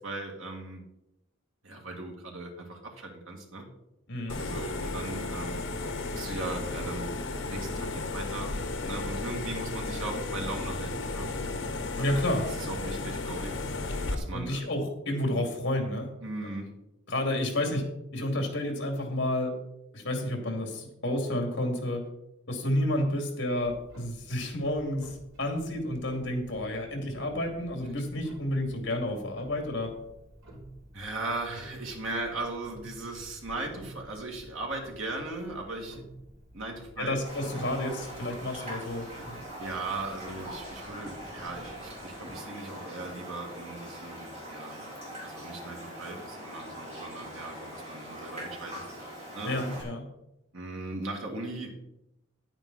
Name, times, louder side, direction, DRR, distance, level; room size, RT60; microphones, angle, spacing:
voice 1, 0.0-0.9 1.6-3.7 4.3-5.6 6.1-8.5 8.8-11.3 12.1-12.2 12.6-13.6 14.1-14.6 16.2-16.7 30.9-36.0 36.5-37.2 39.6-44.8 45.2-48.8 49.3-49.6 50.5-51.8, right 2 dB, 90° right, 1 dB, 2.3 m, -38 dB
voice 2, 4.1-4.4 11.9-12.5 14.3-16.1 16.4-16.7 17.1-17.8 18.1-19.5 19.9-22.0 22.5-29.9 37.0-39.4 49.4-50.0, left 1 dB, 60° left, 3 dB, 2.5 m, -30 dB
sound 1, 4.3-14.2, left 2 dB, 75° left, 1.1 m, -34 dB
Clock, 23.6-42.0, right 1 dB, 70° right, 3.7 m, -51 dB
Raindrop, 37.2-49.8, equal, 35° right, 3.3 m, -42 dB
10.0 x 8.9 x 4.1 m, 0.86 s
head